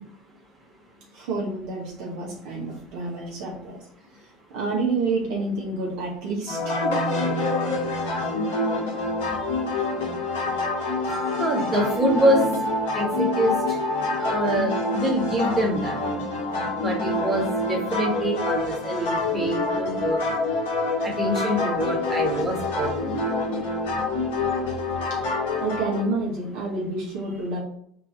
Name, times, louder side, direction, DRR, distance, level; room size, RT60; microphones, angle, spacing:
voice 1, 1.1-3.8 4.5-6.8 11.8-11.9 25.1-25.2 25.6-27.6, right 3 dB, 55° right, -4 dB, 1.9 m, -29 dB
sound 1, 6.5-26.0, left 2 dB, 65° left, 1.6 m, -26 dB
voice 2, 11.1-12.5 12.9-13.5 14.2-16.0 16.8-20.2 21.0-23.2, equal, 20° right, -1 dB, 2.2 m, -25 dB
4.3 x 4.2 x 5.5 m, 0.66 s
figure-of-eight pair, 65°, 0 cm